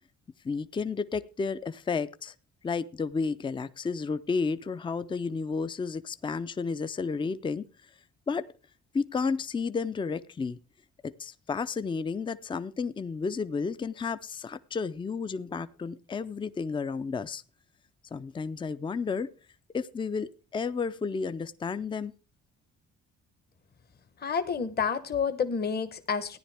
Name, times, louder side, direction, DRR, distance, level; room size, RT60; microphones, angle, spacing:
voice 1, 0.4-2.3 2.6-7.6 8.3-8.4 8.9-10.6 11.0-17.4 18.1-19.3 19.7-22.1, left 5 dB, 15° left, 0.4 m, -32 dB
voice 2, 24.2-26.4, left 6 dB, 35° left, 0.9 m, -29 dB
14.5 x 9.9 x 3.4 m
cardioid pair, 90°, 30 cm